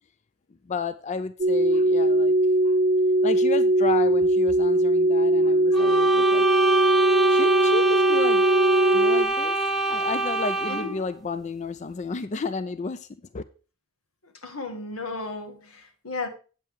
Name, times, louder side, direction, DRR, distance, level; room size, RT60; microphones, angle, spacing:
voice 1, 0.7-2.3 2.6-2.8 3.2-6.4 7.3-8.4 8.9-9.6 9.9-13.1 13.3-13.4, left 4 dB, 35° left, 13 dB, 0.4 m, -32 dB
sound 1, 1.4-9.2, right 1 dB, 40° right, 0.8 m, -20 dB
sound 2, 5.7-11.0, right 3 dB, ahead, 1.0 m, -25 dB
voice 2, 10.7-11.1 14.4-16.3, left 3 dB, 90° left, 7 dB, 1.7 m, -34 dB
8.8 x 7.5 x 4.7 m, 0.36 s
head